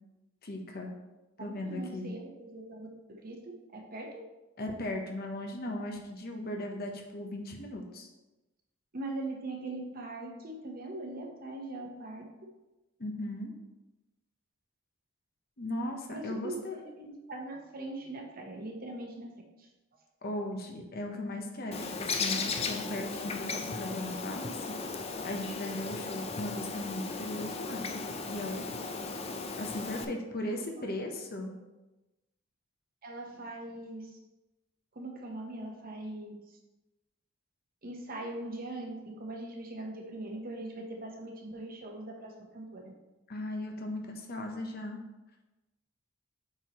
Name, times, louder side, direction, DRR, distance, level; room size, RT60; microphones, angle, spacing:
voice 1, 0.4-0.9 1.4-2.1 4.6-8.1 13.0-13.5 15.6-16.9 20.2-24.6 25.2-28.0 28.3-28.7 29.6-31.5 43.3-45.0, left 1 dB, 50° left, 2 dB, 0.9 m, -37 dB
voice 2, 1.4-3.4 3.7-4.1 8.9-12.2 16.1-19.3 33.0-34.2 34.9-36.4 37.8-42.9, right 2 dB, 45° right, 1 dB, 1.0 m, -41 dB
Bird, 21.7-30.1, left 4 dB, 30° left, 0.5 m, -36 dB
7.7 x 4.7 x 3.0 m, 1.0 s
head